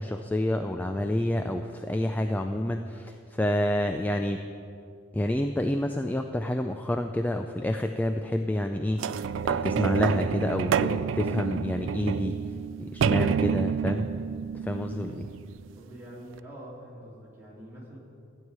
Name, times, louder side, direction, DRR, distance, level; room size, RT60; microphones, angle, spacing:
voice 1, 0.0-4.4 5.1-12.4 12.8-14.1 14.6-15.3, left 1 dB, 10° left, 6 dB, 0.3 m, -28 dB
sound 1, 9.0-15.7 16.4-16.5, right 7 dB, 75° right, 0.3 m, -28 dB
voice 2, 15.7-18.0, right 1 dB, 10° right, -6 dB, 2.7 m, -45 dB
13.5 x 4.8 x 8.9 m, 2.5 s
head